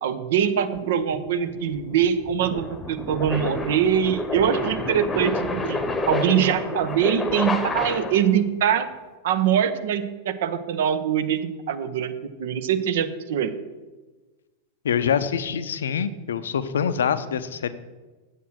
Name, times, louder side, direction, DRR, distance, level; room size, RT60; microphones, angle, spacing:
voice 1, 0.0-5.8 6.0-8.9 9.2-13.5, right 8 dB, 55° right, 10 dB, 0.8 m, -23 dB
sound 1, 0.8-8.4, left 2 dB, 15° left, 1.0 m, -29 dB
voice 2, 14.8-17.7, left 7 dB, 65° left, 14 dB, 0.6 m, -25 dB
8.2 x 7.4 x 6.3 m, 1.2 s
figure-of-eight pair, 90°, 0 cm